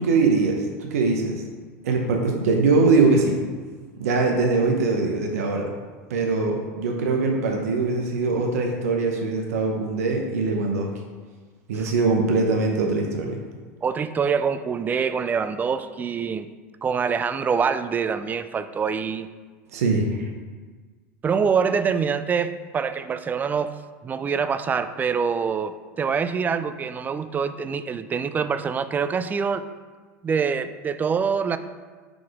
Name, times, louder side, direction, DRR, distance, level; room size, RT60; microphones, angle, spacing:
voice 1, 0.0-1.3 1.8-3.4 4.0-5.7 6.1-10.9 11.7-13.4 19.7-20.1, right 3 dB, 85° right, 2 dB, 0.7 m, -22 dB
voice 2, 13.8-16.5 16.8-19.3 21.2-23.8 24.0-29.6 30.2-31.6, right 6 dB, 20° right, 12 dB, 0.3 m, -25 dB
4.9 x 4.1 x 4.8 m, 1.4 s
supercardioid pair, 105°, 8 cm